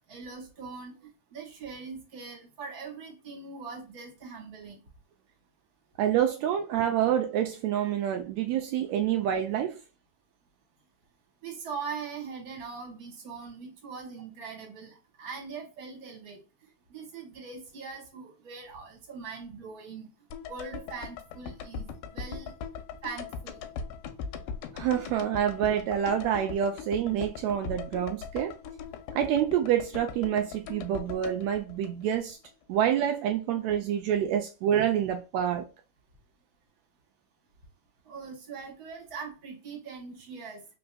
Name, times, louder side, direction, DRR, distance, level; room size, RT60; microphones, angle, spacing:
voice 1, 0.1-0.9 1.3-4.8 11.4-16.4 16.9-20.1 20.5-22.5 23.0-23.6 38.0-40.6, right 5 dB, 40° right, 1.5 m, -41 dB
voice 2, 6.0-9.8 24.7-28.6 29.1-32.4 32.7-35.7, right 10 dB, 90° right, 1.5 m, -27 dB
sound 1, 20.3-32.5 32.8-32.9, left 6 dB, 90° left, 2.3 m, -40 dB
5.1 x 3.4 x 2.3 m
omnidirectional pair, 3.7 m